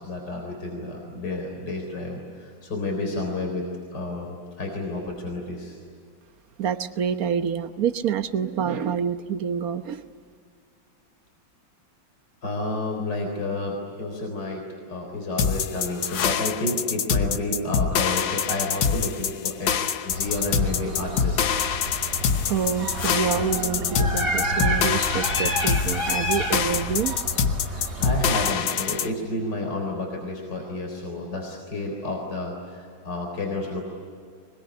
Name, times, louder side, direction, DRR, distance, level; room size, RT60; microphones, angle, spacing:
voice 1, 0.0-3.6 3.9-5.8 12.4-19.7 20.0-21.5 27.6-33.9, left 2 dB, 70° left, 1 dB, 4.6 m, -30 dB
voice 2, 6.6-10.0 22.5-27.2, right 7 dB, 55° right, 9 dB, 1.4 m, -27 dB
sound 1, 15.4-29.1, left 7 dB, 85° left, 1.7 m, -25 dB
sound 2, 20.1-28.5, equal, 35° right, 4.0 m, -30 dB
24.5 x 22.0 x 9.9 m, 2.3 s
omnidirectional pair, 2.0 m